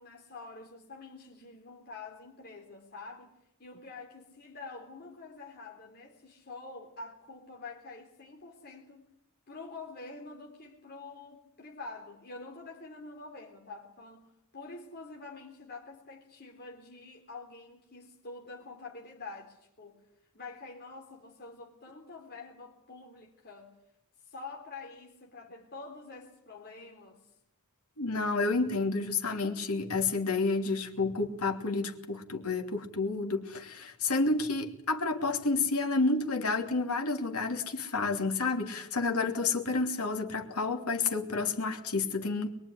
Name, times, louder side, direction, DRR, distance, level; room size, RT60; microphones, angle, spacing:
voice 1, 0.0-3.3 3.6-9.1 9.5-20.0 20.3-23.8 24.2-27.2, left 3 dB, 45° left, 3.7 m, -47 dB
voice 2, 28.0-42.5, left 3 dB, 80° left, 2.9 m, -30 dB
23.0 x 22.5 x 9.9 m
head